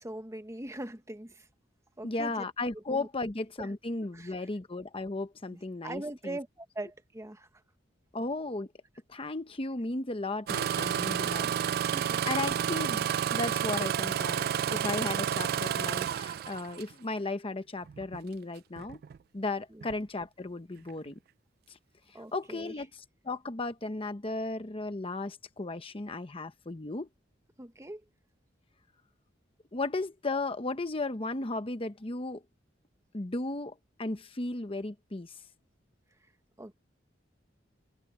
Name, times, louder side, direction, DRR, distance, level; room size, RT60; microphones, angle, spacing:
voice 1, 0.0-1.5 2.0-2.4 2.7-3.1 3.6-3.7 4.1-4.3 5.5-7.5 11.4-11.5 11.8-12.2 19.7-19.8 22.1-22.8 27.6-28.0 36.6-36.7, right 1 dB, 15° right, 1.2 m, -42 dB
voice 2, 2.0-6.4 8.1-8.7 9.1-11.8 12.3-13.1 13.3-19.0 19.3-21.2 21.7-21.8 22.1-22.9 23.2-27.1 29.7-32.4 33.1-35.4, left 2 dB, 30° left, 0.9 m, -35 dB
Engine starting, 10.5-16.9 17.9-18.2 18.8-19.2 19.8-19.9, right 9 dB, 55° right, 0.3 m, -30 dB
head